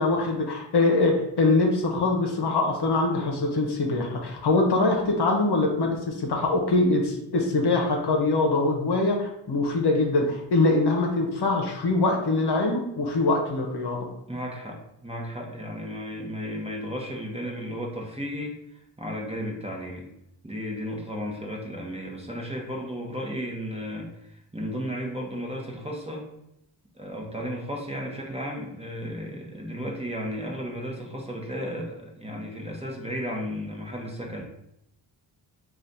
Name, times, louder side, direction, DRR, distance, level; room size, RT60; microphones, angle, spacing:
voice 1, 0.0-14.1, left 2 dB, 55° left, 1 dB, 0.9 m, -23 dB
voice 2, 14.3-20.1 20.4-26.3 26.9-34.4, equal, 15° right, -1 dB, 1.0 m, -34 dB
3.2 x 2.5 x 4.0 m, 0.80 s
supercardioid pair, 45°, 48 cm